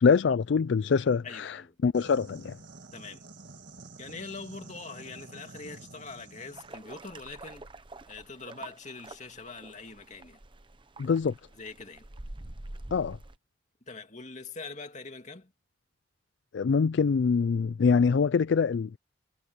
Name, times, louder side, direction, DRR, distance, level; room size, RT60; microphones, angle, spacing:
voice 1, 0.0-1.6 1.8-2.6 11.0-11.3 12.9-13.2 16.5-19.0, left 5 dB, 60° left, 0.4 m, -24 dB
voice 2, 1.2-1.8 2.9-3.2 4.0-7.7 8.1-10.4 11.5-12.0 13.9-15.5, left 4 dB, 35° left, 2.4 m, -43 dB
sound 1, 1.9-6.8, right 3 dB, 60° right, 2.2 m, -49 dB
sound 2, 6.5-13.4, right 2 dB, 25° right, 0.9 m, -46 dB
head